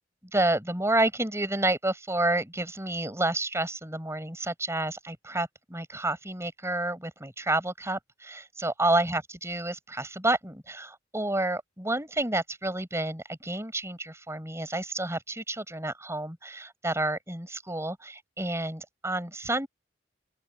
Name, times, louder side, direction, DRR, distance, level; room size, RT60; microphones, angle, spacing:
voice 1, 0.3-19.7, right 2 dB, 15° right, 7.1 m, -29 dB
open air
head